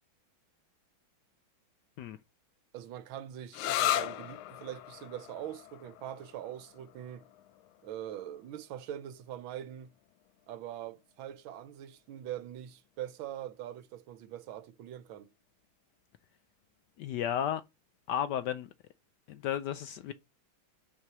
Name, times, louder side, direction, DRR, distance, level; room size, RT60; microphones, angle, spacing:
voice 1, 2.7-7.3 7.8-9.9 10.5-15.3, right 11 dB, 80° right, 1.5 m, -43 dB
sound 1, 3.5-10.9, left 13 dB, 90° left, 1.4 m, -38 dB
voice 2, 17.0-17.6 18.1-18.7 19.3-20.1, left 10 dB, 75° left, 1.0 m, -33 dB
5.9 x 4.7 x 6.0 m
omnidirectional pair, 2.2 m